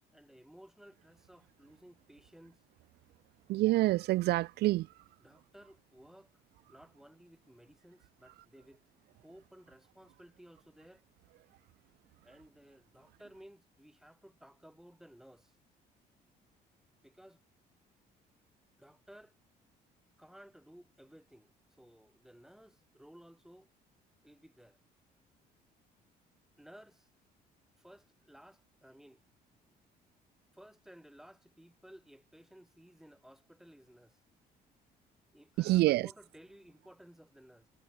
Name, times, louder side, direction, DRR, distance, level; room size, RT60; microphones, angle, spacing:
voice 1, 0.1-2.6 5.2-6.3 6.7-8.8 9.1-11.0 12.2-15.6 17.0-17.4 18.8-19.4 20.2-23.7 24.2-24.8 26.6-27.1 27.8-29.2 30.5-34.2 35.3-37.7, equal, ahead, 4.9 m, -57 dB
voice 2, 3.5-5.0 35.6-36.1, right 18 dB, 75° right, 0.6 m, -27 dB
cardioid pair, 110°, 17 cm